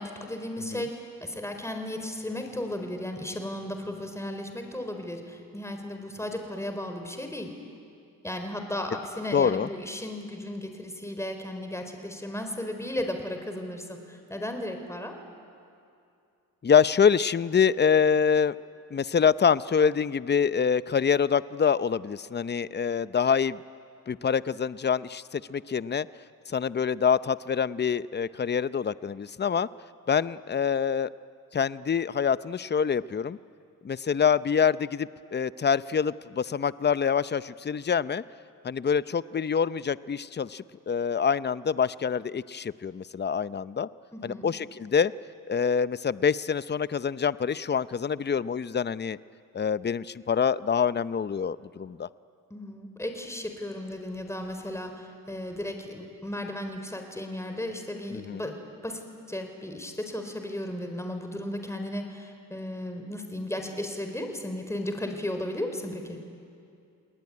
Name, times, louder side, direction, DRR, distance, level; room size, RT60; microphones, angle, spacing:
voice 1, 0.0-7.5 8.2-15.1 44.1-44.5 52.5-59.0 59.3-66.2, left 1 dB, 10° left, 5 dB, 4.4 m, -35 dB
voice 2, 9.3-9.7 16.6-18.5 18.9-23.6 24.1-26.1 26.5-29.7 30.1-31.1 31.5-33.4 33.8-38.2 38.6-43.9 44.2-45.1 45.5-49.2 49.5-52.1 58.1-58.5, left 7 dB, 30° left, 16 dB, 0.7 m, -25 dB
30.0 x 20.0 x 9.8 m, 2.5 s
cardioid pair, 65°, 34 cm